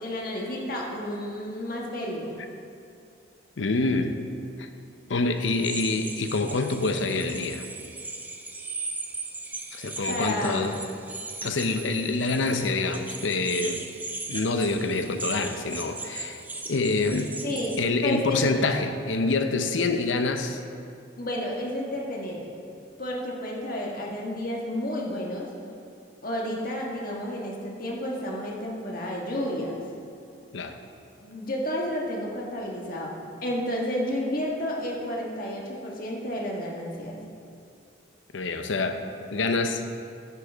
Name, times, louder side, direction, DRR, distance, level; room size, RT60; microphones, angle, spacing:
voice 1, 0.0-2.4 10.1-10.6 17.4-18.5 21.2-22.5 23.0-25.5 26.2-29.8 31.2-33.1 33.4-37.2, left 1 dB, 50° left, -2 dB, 1.5 m, -31 dB
voice 2, 3.6-4.2 4.6-4.7 5.1-7.7 9.7-10.8 11.4-13.9 14.3-16.4 16.7-17.3 17.8-20.6 30.5-30.8 38.3-39.0 39.3-39.8, left 3 dB, 85° left, 7 dB, 0.7 m, -26 dB
sound 1, 5.4-17.8, right 3 dB, 10° right, 0.5 m, -38 dB
10.5 x 10.0 x 3.5 m, 2.5 s
head